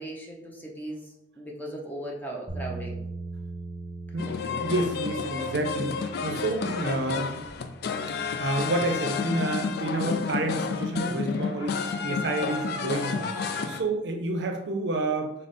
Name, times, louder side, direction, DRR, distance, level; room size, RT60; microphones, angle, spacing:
voice 1, 0.0-3.0, right 1 dB, 10° left, -2 dB, 0.6 m, -38 dB
sound 1, 2.5-10.6, right 3 dB, 5° right, 1.2 m, -41 dB
voice 2, 4.1-7.3 8.1-13.4 13.7-15.3, right 2 dB, 65° right, 4 dB, 0.5 m, -29 dB
sound 2, 4.2-13.8, left 5 dB, 55° left, 0.3 m, -31 dB
4.8 x 2.0 x 4.1 m, 0.84 s
head